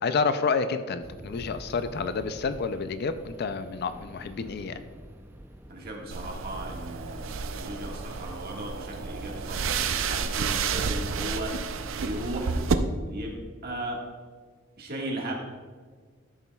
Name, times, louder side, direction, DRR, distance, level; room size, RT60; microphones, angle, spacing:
voice 1, 0.0-4.8, left 4 dB, 50° left, 11 dB, 0.4 m, -29 dB
sound 1, 1.0-6.2, equal, 10° right, 0.4 m, -46 dB
voice 2, 5.7-11.6 12.0-12.6 13.1-14.0 14.8-15.3, right 1 dB, 50° right, -1 dB, 1.6 m, -36 dB
sound 2, 6.1-12.7, right 5 dB, 70° right, 0.5 m, -30 dB
12.5 x 7.1 x 2.3 m, 1.5 s
head